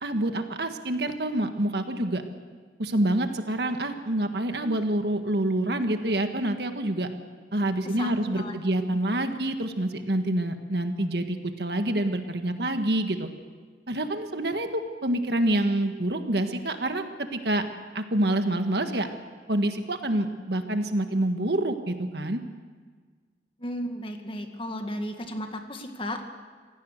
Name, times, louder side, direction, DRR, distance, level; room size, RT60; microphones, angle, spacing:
voice 1, 0.0-2.2 2.8-7.1 7.5-13.3 13.9-17.0 17.3-17.6 18.0-19.1 19.5-22.4, right 1 dB, 65° right, 7 dB, 1.6 m, -27 dB
voice 2, 7.9-8.5 23.6-26.3, equal, 30° left, 5 dB, 1.9 m, -34 dB
26.0 x 17.5 x 6.6 m, 1.5 s
head